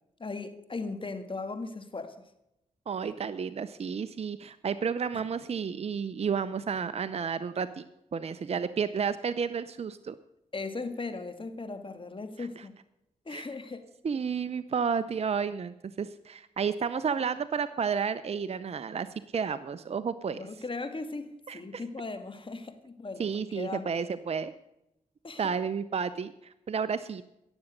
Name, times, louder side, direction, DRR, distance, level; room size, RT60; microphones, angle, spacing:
voice 1, 0.2-2.2 10.5-12.7 13.3-13.9 20.4-23.3 23.5-23.9 25.2-25.5, left 3 dB, 40° left, 9 dB, 1.8 m, -38 dB
voice 2, 2.9-7.8 8.1-10.1 12.4-12.6 13.3-13.5 14.0-19.1 19.3-20.4 21.5-21.8 23.2-24.5 25.4-27.2, right 6 dB, 50° right, 13 dB, 0.6 m, -31 dB
17.5 x 7.2 x 6.5 m, 0.85 s
cardioid pair, 50°, 14 cm